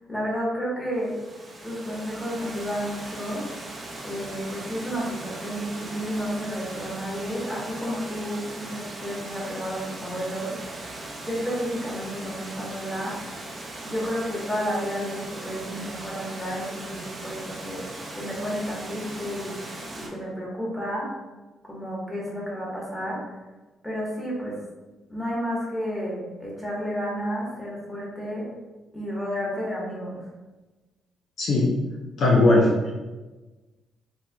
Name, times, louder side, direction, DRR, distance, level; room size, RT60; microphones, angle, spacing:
voice 1, 0.1-1.1 1.6-3.4 4.0-10.9 11.2-13.2 13.8-17.9 18.1-19.5 20.0-21.1 21.6-23.2 23.8-24.6 25.1-28.5 28.9-30.3, equal, 10° left, -5 dB, 1.3 m, -31 dB
Water, 1.0-20.1, right 2 dB, 35° right, 0.8 m, -39 dB
voice 2, 31.4-31.7 32.2-32.9, left 2 dB, 65° left, -3 dB, 0.8 m, -19 dB
4.3 x 2.9 x 2.3 m, 1.2 s
cardioid pair, 90°, 0 cm